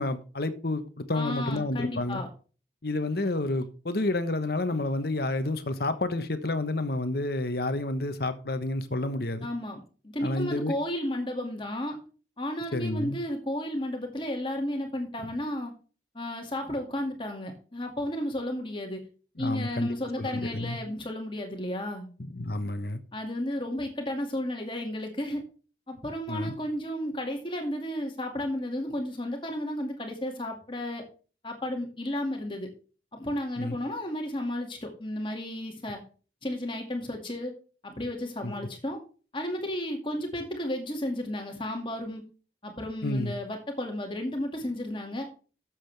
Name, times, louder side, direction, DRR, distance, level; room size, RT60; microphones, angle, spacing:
voice 1, 0.0-2.2 2.8-9.5 10.2-10.7 12.7-13.2 15.2-15.3 19.4-19.9 20.2-20.8 22.2-23.0 26.3-26.5 33.6-33.8 38.4-38.5 43.0-43.3, left 2 dB, 55° left, 1.2 m, -30 dB
voice 2, 1.1-2.3 9.4-12.0 12.4-15.7 16.1-19.0 19.4-22.1 23.1-25.4 25.9-31.0 31.4-32.7 33.1-36.0 36.4-37.5 37.8-39.0 39.3-42.2 42.6-45.3, left 1 dB, 25° left, 2.2 m, -33 dB
12.0 x 7.6 x 3.4 m
head